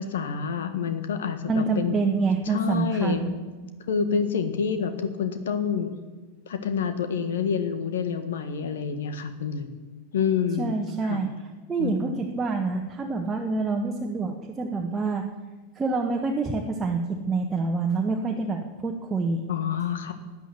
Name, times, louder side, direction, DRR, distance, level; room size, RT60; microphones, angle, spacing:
voice 1, 0.0-2.0 2.5-3.2 3.9-5.9 6.5-9.7 10.1-10.8 11.1-11.2 11.8-12.1 19.5-20.1, left 6 dB, 60° left, 9 dB, 1.5 m, -27 dB
voice 2, 1.5-3.3 10.6-11.3 11.7-15.2 15.7-19.4, right 4 dB, 15° right, 2 dB, 1.3 m, -27 dB
12.5 x 9.0 x 9.8 m, 1.3 s
figure-of-eight pair, 90°, 0 cm